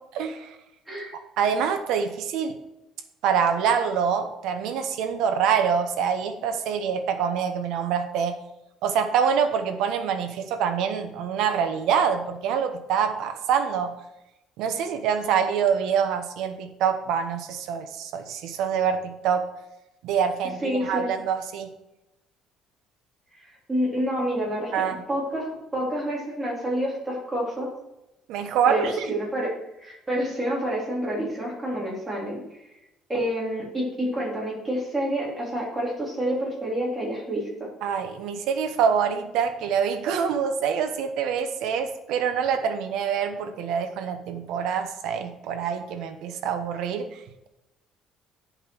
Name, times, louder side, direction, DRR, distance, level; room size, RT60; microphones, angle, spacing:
voice 1, 0.1-0.5 1.4-2.6 3.2-8.3 8.8-13.9 14.6-19.4 20.0-21.7 24.7-25.0 28.3-29.2 37.8-47.2, right 7 dB, 70° right, 7 dB, 1.1 m, -25 dB
voice 2, 20.6-21.1 23.3-23.4 23.7-24.7 25.1-27.7 28.7-29.5 29.8-32.4 33.1-37.5, equal, 10° right, -4 dB, 3.1 m, -28 dB
9.4 x 5.3 x 6.1 m, 0.92 s
cardioid pair, 170°, 0 cm